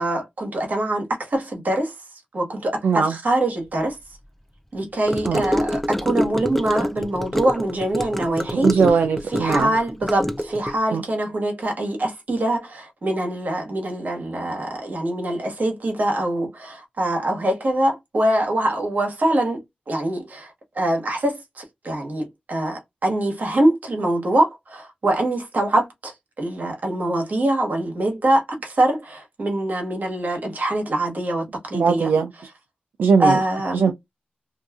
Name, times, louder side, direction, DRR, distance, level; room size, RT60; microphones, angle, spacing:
voice 1, 0.0-1.9 2.3-4.0 4.7-8.7 9.3-32.1 33.2-33.9, right 1 dB, 55° right, 1.2 m, -24 dB
voice 2, 2.8-3.1 5.2-5.4 8.5-9.7 10.9-11.0 31.7-32.3 33.0-33.4 33.7-33.9, right 5 dB, 85° right, 0.3 m, -19 dB
Gurgling / Car passing by / Sink (filling or washing), 5.1-10.8, equal, 5° left, 0.4 m, -26 dB
2.6 x 2.3 x 2.3 m
wide cardioid pair, 70°, 3 cm